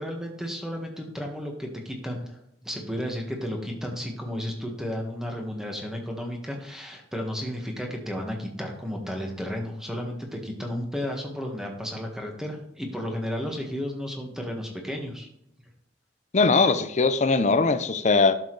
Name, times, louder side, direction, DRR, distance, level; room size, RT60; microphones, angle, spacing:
voice 1, 0.0-15.3, equal, 5° right, 1.6 m, -33 dB
voice 2, 16.3-18.3, left 4 dB, 40° left, 0.6 m, -20 dB
11.5 x 6.6 x 3.3 m
head